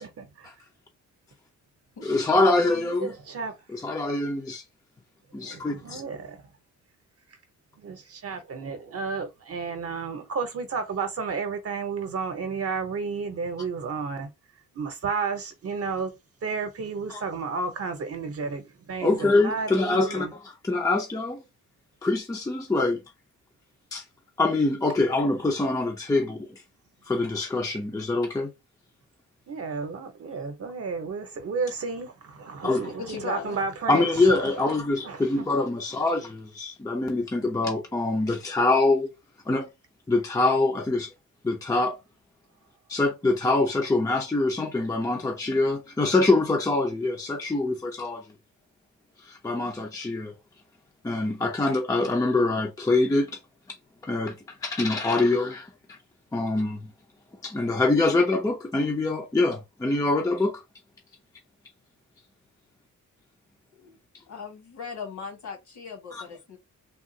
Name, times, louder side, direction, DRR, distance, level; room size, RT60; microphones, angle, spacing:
voice 1, 0.0-0.5 2.6-3.6 5.4-6.4 7.8-14.3 14.7-16.1 16.4-20.3 29.5-34.7 35.0-35.4, right 5 dB, 50° right, 0.8 m, -32 dB
voice 2, 2.0-3.1 3.7-4.6 5.3-6.0 17.1-17.2 19.0-21.4 22.0-23.0 23.9-24.0 24.4-26.6 27.1-28.5 32.6-32.9 33.9-39.1 39.5-39.7 40.1-41.1 41.4-42.0 42.9-48.2 49.2-50.4 51.0-53.4 54.0-55.7 56.3-56.9 57.4-60.6 66.1-66.2, left 2 dB, 10° left, 0.5 m, -24 dB
voice 3, 33.0-33.6 63.7-64.0 64.3-66.6, left 6 dB, 65° left, 1.6 m, -38 dB
3.5 x 2.4 x 2.7 m
wide cardioid pair, 150°, 31 cm